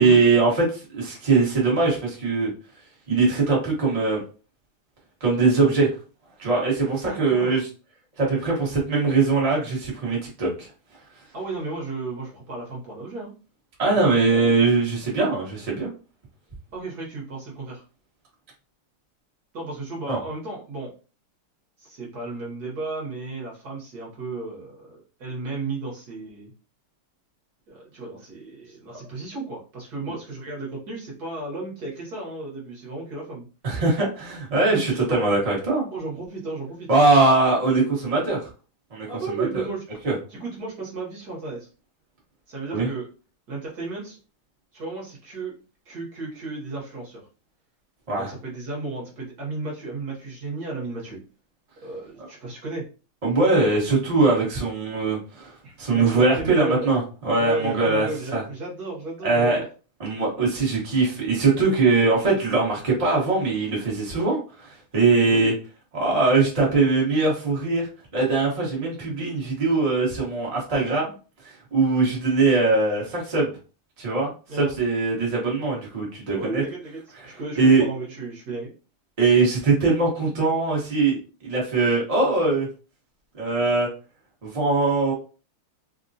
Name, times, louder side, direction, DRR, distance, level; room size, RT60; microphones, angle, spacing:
voice 1, 0.0-2.5 3.1-4.2 5.2-5.9 6.4-7.7 8.2-10.7 13.8-15.9 20.1-20.2 33.6-35.9 36.9-38.5 38.9-39.1 39.5-39.6 40.0-40.1 42.7-42.9 48.1-48.3 53.2-55.5 55.8-58.4 59.2-59.6 60.0-65.5 65.9-67.9 68.1-71.1 71.4-73.5 74.0-76.6 77.2-77.9 79.2-82.7 83.4-83.9 84.4-85.1, right 3 dB, 30° right, -4 dB, 0.7 m, -21 dB
voice 2, 7.0-7.6 11.3-13.3 13.8-14.1 16.7-17.8 19.5-20.9 21.8-26.5 27.7-33.5 34.7-35.3 35.9-36.9 39.1-40.0 40.3-41.7 42.5-43.1 43.5-44.2 44.7-45.5 45.8-47.2 48.1-51.2 51.8-52.8 55.6-56.9 57.4-59.6 65.3-65.5 74.5-74.7 76.3-78.7, right 3 dB, 55° right, -3 dB, 1.3 m, -34 dB
3.5 x 2.1 x 2.6 m, 0.35 s
omnidirectional pair, 2.3 m